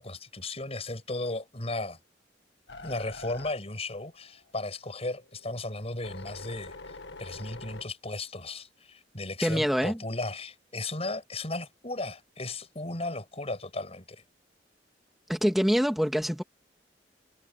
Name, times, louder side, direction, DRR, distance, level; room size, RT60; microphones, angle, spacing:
voice 1, 0.0-2.0 2.8-14.2, left 2 dB, 35° left, 6.4 m, -35 dB
sound 1, 2.7-4.5 5.0-7.8, left 3 dB, 80° left, 1.8 m, -45 dB
voice 2, 9.4-10.0 15.3-16.4, equal, ahead, 2.4 m, -25 dB
head